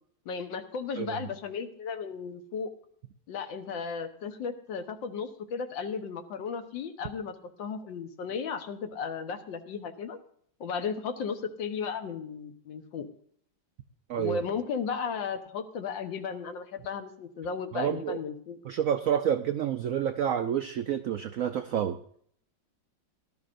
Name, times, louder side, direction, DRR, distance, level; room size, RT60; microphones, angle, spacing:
voice 1, 0.2-2.7 3.3-10.2 10.6-13.1 14.2-18.6, left 6 dB, 80° left, 7 dB, 1.7 m, -35 dB
voice 2, 17.7-18.2 18.6-22.0, right 9 dB, 80° right, 8 dB, 0.7 m, -29 dB
18.0 x 12.0 x 2.6 m, 0.62 s
omnidirectional pair, 2.1 m